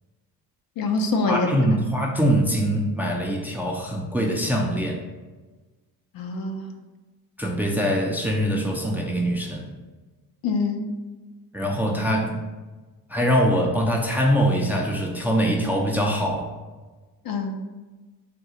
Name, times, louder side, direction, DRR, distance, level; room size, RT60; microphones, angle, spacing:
voice 1, 0.8-1.7 6.1-6.7 10.4-10.9 17.2-17.6, left 3 dB, 60° left, 4 dB, 0.6 m, -25 dB
voice 2, 1.3-5.0 7.4-9.7 11.5-12.4 13.1-16.5, equal, 5° right, -1 dB, 0.5 m, -23 dB
3.6 x 2.3 x 2.8 m, 1.2 s
supercardioid pair, 70°, 42 cm